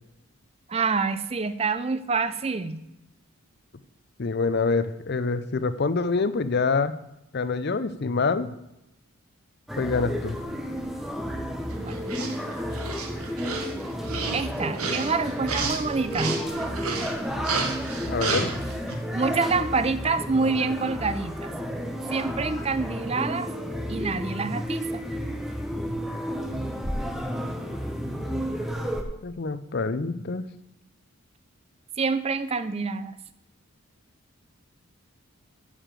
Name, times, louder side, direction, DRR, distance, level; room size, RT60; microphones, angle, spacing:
voice 1, 0.7-2.8 11.8-11.9 14.3-16.4 19.1-21.5 22.1-23.5 23.9-25.0 32.0-33.1, right 4 dB, 25° right, 12 dB, 0.4 m, -27 dB
voice 2, 4.2-6.9 7.3-8.5 9.8-10.4 18.1-18.5 29.2-30.4, left 4 dB, 45° left, 13 dB, 0.5 m, -26 dB
sound 1, 9.7-29.0, equal, ahead, 0.8 m, -32 dB
sound 2, 11.7-18.9, right 4 dB, 85° right, 1.3 m, -31 dB
9.9 x 5.1 x 7.5 m, 0.87 s
head